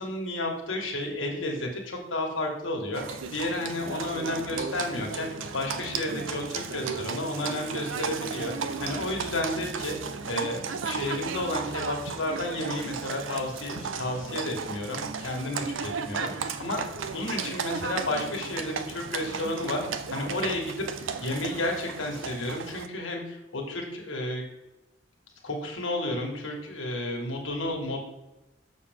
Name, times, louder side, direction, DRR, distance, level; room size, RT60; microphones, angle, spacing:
voice 1, 0.0-5.3 5.5-9.9 10.3-16.3 16.6-16.8 17.1-19.8 20.1-20.9 21.2-24.4 25.4-28.0, left 1 dB, 90° left, 0 dB, 1.8 m, -32 dB
Livestock farm animals working animals, 2.9-22.9, right 5 dB, 85° right, 0.6 m, -35 dB
6.6 x 6.5 x 3.6 m, 0.99 s
head